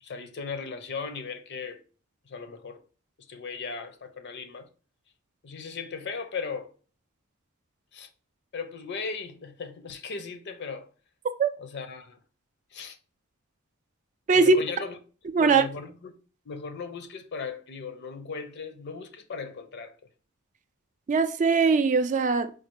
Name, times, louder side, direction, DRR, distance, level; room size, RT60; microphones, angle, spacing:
voice 1, 0.0-1.8 2.3-2.8 3.3-4.7 5.4-6.7 7.9-8.1 8.5-10.9 11.6-12.2 12.7-13.0 14.3-15.0 15.4-16.1 16.5-19.9, left 5 dB, 50° left, 0.6 m, -37 dB
voice 2, 15.3-15.6 21.1-22.5, right 4 dB, 35° right, 0.3 m, -21 dB
4.5 x 2.3 x 4.5 m
head